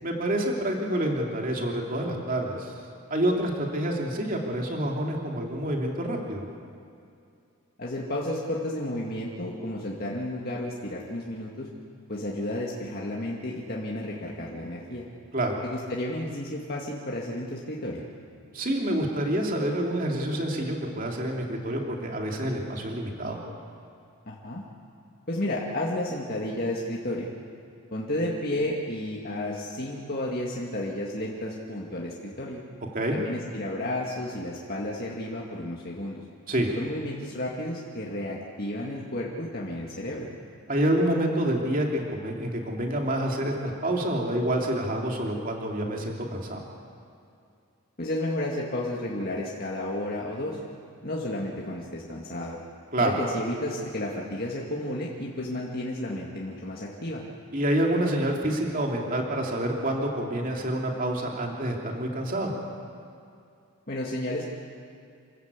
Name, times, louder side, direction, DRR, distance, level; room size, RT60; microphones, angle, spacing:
voice 1, 0.0-2.7 3.1-6.4 15.3-15.5 18.5-23.4 32.9-33.2 36.5-36.7 40.7-46.6 52.9-53.1 57.5-62.5, right 1 dB, 35° right, 0 dB, 2.7 m, -27 dB
voice 2, 7.8-11.7 12.1-15.1 15.6-18.0 24.3-24.6 25.3-27.3 27.9-32.6 33.1-36.2 36.8-40.3 48.0-50.6 51.0-52.6 53.0-57.2 63.9-64.4, left 1 dB, 40° left, -4 dB, 2.0 m, -32 dB
28.0 x 14.0 x 8.3 m, 2.5 s
head